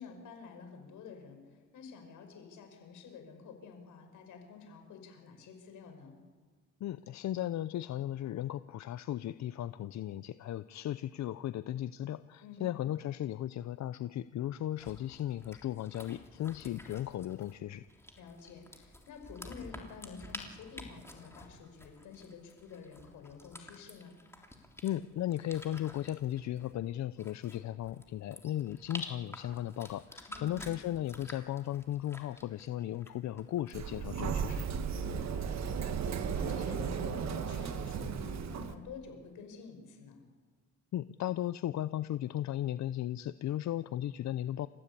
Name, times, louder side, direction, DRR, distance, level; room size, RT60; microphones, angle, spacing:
voice 1, 0.0-1.4 1.7-6.2 12.4-12.7 18.2-24.2 30.3-30.6 34.9-40.2, left 5 dB, 85° left, 5 dB, 5.6 m, -49 dB
voice 2, 6.8-17.8 24.8-34.7 40.9-44.7, left 12 dB, 65° left, 14 dB, 0.7 m, -36 dB
sound 1, 14.8-34.0, left 1 dB, 10° left, 3.4 m, -50 dB
Sliding door, 33.7-38.7, right 7 dB, 60° right, 1.7 m, -35 dB
29.0 x 15.5 x 8.5 m, 1.4 s
cardioid pair, 90°, 30 cm